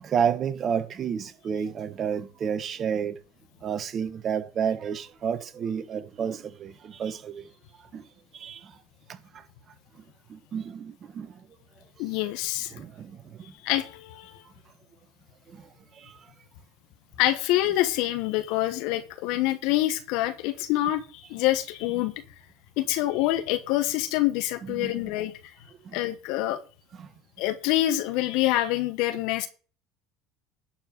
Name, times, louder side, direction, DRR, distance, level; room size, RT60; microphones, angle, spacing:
voice 1, 0.0-3.2 3.6-7.5 7.9-8.1 8.3-8.7 9.3-9.4 10.3-11.4 12.7-13.5 15.5-15.7 15.9-16.2 24.6-24.9 25.8-26.0 27.0-27.1, right 7 dB, 45° right, 1.2 m, -31 dB
voice 2, 12.0-12.7 13.6-14.4 17.2-22.1 22.8-25.3 25.9-26.6 27.4-29.5, left 15 dB, 70° left, 1.2 m, -26 dB
11.0 x 4.8 x 6.6 m
hypercardioid pair, 80°, 0 cm